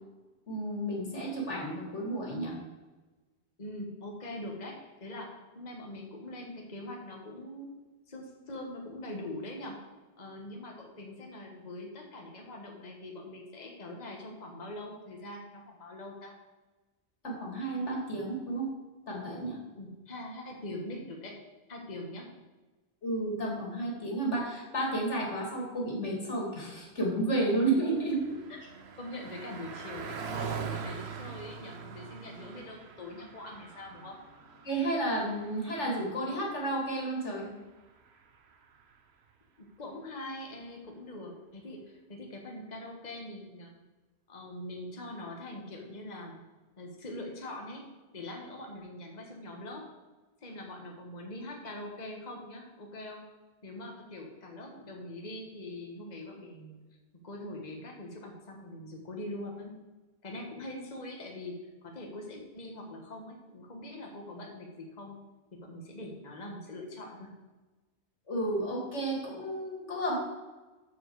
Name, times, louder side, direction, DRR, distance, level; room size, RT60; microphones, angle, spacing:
voice 1, 0.5-2.5 17.2-18.7 19.1-19.6 23.0-28.2 34.6-37.5 68.3-70.1, right 2 dB, 90° left, -2 dB, 2.7 m, -31 dB
voice 2, 3.6-5.3 5.5-7.8 8.1-9.8 10.2-16.3 19.8-21.4 21.7-22.3 29.0-34.2 39.6-43.7 44.3-46.4 46.8-47.8 48.1-49.9 50.4-53.2 53.6-56.7 57.2-59.8 60.2-65.2 65.5-67.3, left 1 dB, 40° left, 0 dB, 1.5 m, -43 dB
Car passing by, 27.6-39.1, right 6 dB, 70° right, 1.1 m, -44 dB
13.5 x 4.7 x 4.6 m, 1.2 s
omnidirectional pair, 1.2 m